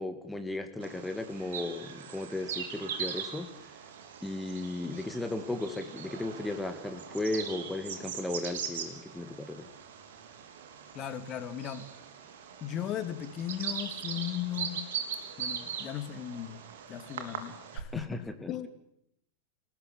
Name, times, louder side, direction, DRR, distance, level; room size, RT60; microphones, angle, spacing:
voice 1, 0.0-3.8 4.2-9.7 17.9-18.5, left 2 dB, 5° left, 7 dB, 2.2 m, -35 dB
Bird vocalization bird call bird song, 0.8-17.8, right 7 dB, 60° right, 4.2 m, -41 dB
voice 2, 10.9-11.9 12.6-14.9 15.4-16.6 16.9-18.7, left 10 dB, 30° left, 10 dB, 2.5 m, -37 dB
28.0 x 19.0 x 9.8 m, 0.80 s
figure-of-eight pair, 90°, 0 cm